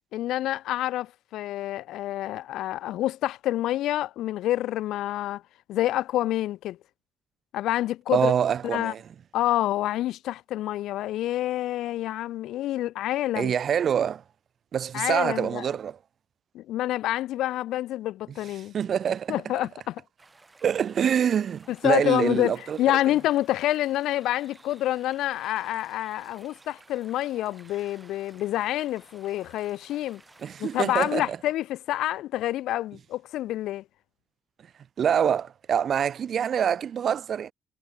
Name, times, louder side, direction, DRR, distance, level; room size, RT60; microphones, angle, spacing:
voice 1, 0.1-5.4 5.7-6.8 7.5-8.3 8.6-8.9 9.3-13.5 14.9-15.7 16.5-18.7 19.3-20.0 21.7-30.2 30.6-33.8, left 14 dB, 90° left, 0.5 m, -27 dB
voice 2, 8.1-9.0 13.4-14.2 14.7-16.0 18.7-19.4 20.6-22.8 30.4-31.4 35.0-37.5, right 8 dB, 55° right, 0.3 m, -25 dB
sound 1, 20.2-31.2, right 3 dB, 20° right, 1.2 m, -55 dB
cardioid pair, 120°, 0 cm